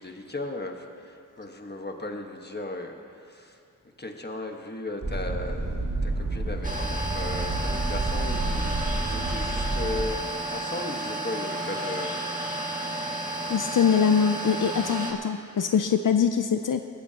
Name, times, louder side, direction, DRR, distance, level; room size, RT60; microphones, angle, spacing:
voice 1, 0.0-3.0 3.3-3.6 4.0-10.2 10.5-12.1, left 2 dB, 30° left, 3 dB, 1.4 m, -36 dB
sound 1, 5.0-10.0, right 2 dB, 85° right, 2.0 m, -29 dB
sound 2, 6.6-15.1, right 1 dB, 25° right, 2.0 m, -32 dB
voice 2, 13.5-16.8, left 7 dB, 75° left, 7 dB, 0.5 m, -23 dB
20.5 x 14.5 x 2.9 m, 2.6 s
wide cardioid pair, 50°, 31 cm